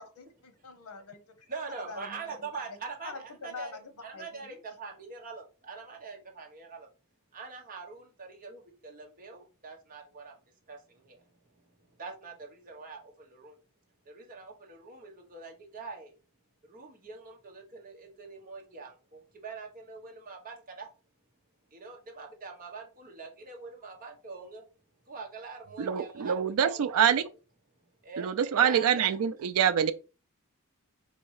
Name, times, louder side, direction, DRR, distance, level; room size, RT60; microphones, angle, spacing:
voice 1, 0.0-1.5 1.9-2.8 3.0-4.6, left 4 dB, 85° left, 0.9 m, -45 dB
voice 2, 1.5-6.9 7.3-10.4 10.7-13.6 14.0-16.2 16.6-20.9 21.7-24.7 25.0-26.4 26.6-26.8 27.1-27.2 28.0-28.4 28.6-29.0, right 4 dB, 40° right, 1.1 m, -44 dB
voice 3, 25.8-27.2 28.2-29.9, right 8 dB, 80° right, 0.4 m, -25 dB
4.1 x 2.7 x 4.8 m
head